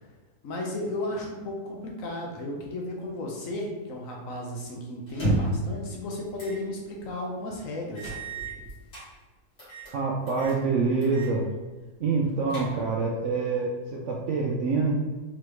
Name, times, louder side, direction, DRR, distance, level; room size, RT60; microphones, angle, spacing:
voice 1, 0.4-8.1, left 1 dB, 65° left, -1 dB, 1.0 m, -34 dB
sound 1, 5.1-5.7 6.4-6.6 7.0-7.1 8.0-9.1 9.6-9.9 10.3-10.6 11.0-11.3 11.6-11.7 12.2-13.0, right 2 dB, 45° left, 1.8 m, -31 dB
voice 2, 9.9-11.5 12.0-15.0, right 4 dB, 70° right, -2 dB, 0.7 m, -26 dB
3.7 x 3.1 x 3.0 m, 1.3 s
omnidirectional pair, 1.7 m